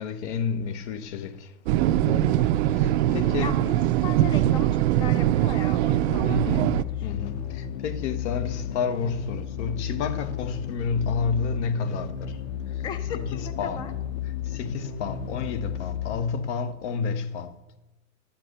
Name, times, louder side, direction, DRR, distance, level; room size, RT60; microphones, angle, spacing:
voice 1, 0.0-1.5 1.9-3.7 6.2-12.4 13.1-13.8 14.5-17.5, left 5 dB, 65° left, 1.2 m, -30 dB
sound 1, 1.7-6.8, right 13 dB, 60° right, 0.5 m, -22 dB
voice 2, 3.4-3.7 4.0-7.3 12.8-13.9, left 6 dB, 10° left, 0.4 m, -37 dB
sound 2, 5.9-16.6, left 8 dB, 40° left, 1.1 m, -33 dB
10.5 x 5.9 x 8.0 m
supercardioid pair, 135°, 38 cm